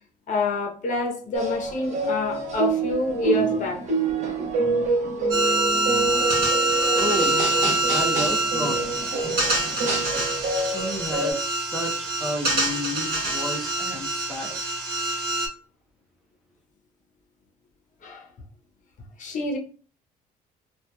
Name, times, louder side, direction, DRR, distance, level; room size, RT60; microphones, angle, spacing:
voice 1, 0.3-3.8 18.0-18.3 19.2-19.6, left 2 dB, 45° left, 0.7 m, -27 dB
sound 1, 1.3-11.3, right 3 dB, 45° right, 0.8 m, -27 dB
sound 2, 5.3-15.5, right 2 dB, 60° right, 1.0 m, -25 dB
voice 2, 6.9-7.5 7.9-9.2 10.5-14.6, left 1 dB, ahead, 0.5 m, -32 dB
2.7 x 2.3 x 2.2 m
cardioid pair, 110°, 17 cm